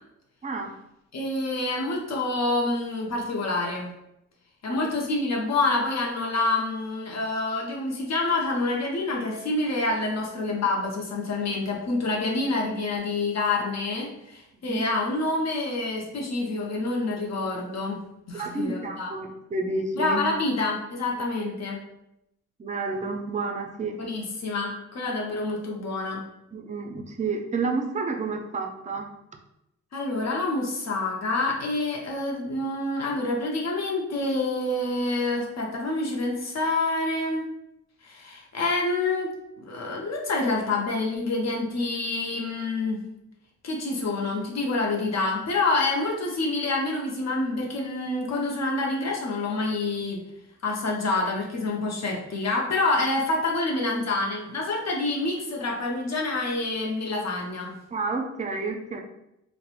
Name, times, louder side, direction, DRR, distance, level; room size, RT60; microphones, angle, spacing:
voice 1, 0.4-0.7 4.7-4.8 14.6-14.8 18.3-20.2 22.6-24.0 26.5-29.1 57.9-59.0, right 3 dB, 25° right, 3 dB, 0.4 m, -30 dB
voice 2, 1.1-3.9 4.6-18.0 18.3-19.1 20.0-21.8 24.0-26.2 29.9-37.5 38.0-39.3 39.6-43.0 43.6-50.2 50.6-57.7, left 2 dB, 60° left, -1 dB, 0.6 m, -27 dB
2.8 x 2.1 x 2.4 m, 0.84 s
cardioid pair, 70°, 31 cm